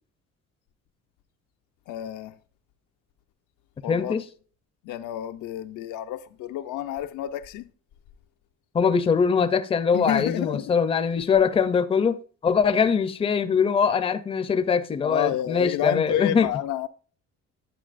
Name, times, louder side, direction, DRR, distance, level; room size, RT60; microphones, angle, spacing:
voice 1, 1.9-2.3 3.8-4.2 4.8-7.7 9.9-10.8 15.0-16.9, left 12 dB, 85° left, 0.6 m, -30 dB
voice 2, 3.9-4.2 8.7-12.2 12.4-16.5, left 6 dB, 20° left, 0.5 m, -22 dB
9.9 x 8.6 x 2.5 m
cardioid pair, 145°, 30 cm